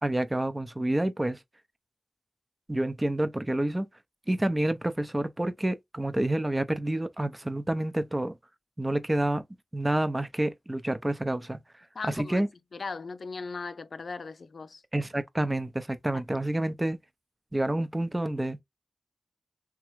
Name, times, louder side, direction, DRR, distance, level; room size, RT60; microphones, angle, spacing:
voice 1, 0.0-1.4 2.7-3.9 4.3-8.4 8.8-9.4 9.7-11.6 12.0-12.5 14.9-17.0 17.5-18.6, right 1 dB, 20° right, 0.6 m, -28 dB
voice 2, 11.9-12.4 12.7-14.8 16.1-16.2, left 4 dB, 70° left, 0.3 m, -38 dB
3.5 x 3.0 x 3.0 m
cardioid pair, 50°, 0 cm